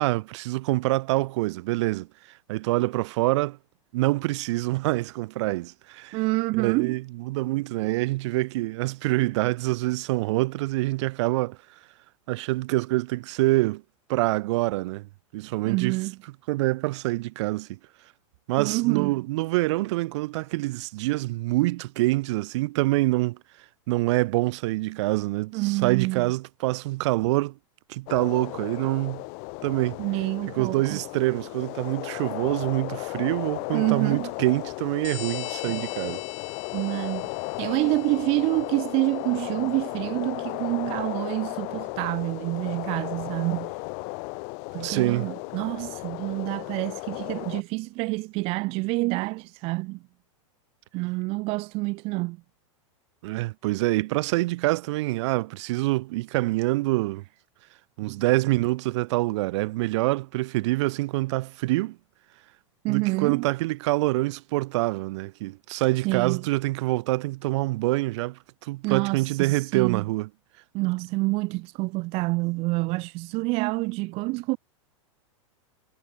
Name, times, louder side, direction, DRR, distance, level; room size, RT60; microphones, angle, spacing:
voice 1, 0.0-2.1 2.5-3.6 3.9-6.2 6.6-11.6 12.3-13.8 14.1-16.0 16.5-17.8 18.5-23.4 23.9-27.6 27.9-29.2 29.6-30.0 30.5-36.2 44.8-45.3 53.2-57.2 58.0-62.0 62.9-70.3, right 20 dB, 60° right, 0.9 m, -26 dB
voice 2, 6.1-7.0 15.7-16.2 18.6-19.1 25.5-26.3 30.0-31.0 33.7-34.3 36.7-37.3 37.6-43.7 44.7-50.0 50.9-52.4 58.1-58.2 62.8-63.5 66.0-66.4 68.8-70.0 70.7-74.6, right 24 dB, 35° right, 0.4 m, -27 dB
sound 1, 28.1-47.6, left 40 dB or more, 45° left, 0.9 m, -35 dB
sound 2, 35.0-39.3, left 19 dB, 60° left, 2.7 m, -42 dB
hypercardioid pair, 130°, 17 cm